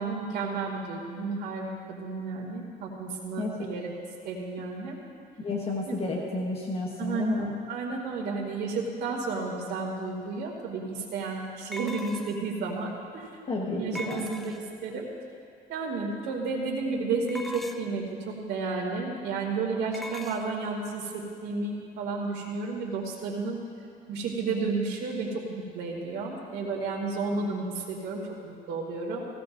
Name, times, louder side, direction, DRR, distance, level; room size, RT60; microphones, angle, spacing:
voice 1, 0.0-3.9 4.2-5.0 5.8-6.0 7.0-13.4 13.7-15.1 15.7-23.6 24.1-29.3, right 4 dB, 75° right, 0 dB, 2.5 m, -32 dB
voice 2, 5.4-7.5 13.5-14.3, left 2 dB, 35° left, -2 dB, 1.5 m, -31 dB
sound 1, 10.1-10.2 11.7-12.6 14.0-14.9 17.3-18.0 19.9-20.5, equal, ahead, 0.6 m, -40 dB
17.5 x 16.5 x 2.6 m, 2.4 s
cardioid pair, 110°, 17 cm